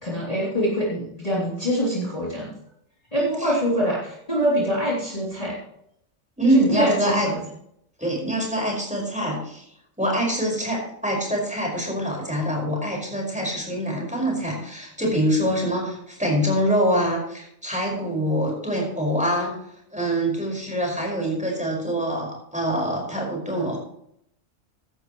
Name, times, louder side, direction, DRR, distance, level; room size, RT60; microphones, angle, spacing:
voice 1, 0.0-2.5 3.1-5.6 6.4-7.4, equal, 25° left, -6 dB, 3.3 m, -24 dB
voice 2, 3.2-3.5 6.4-7.3 8.0-9.6 10.0-19.5 19.9-23.8, right 1 dB, 5° right, -2 dB, 5.1 m, -25 dB
16.0 x 11.5 x 3.1 m, 0.72 s
omnidirectional pair, 1.4 m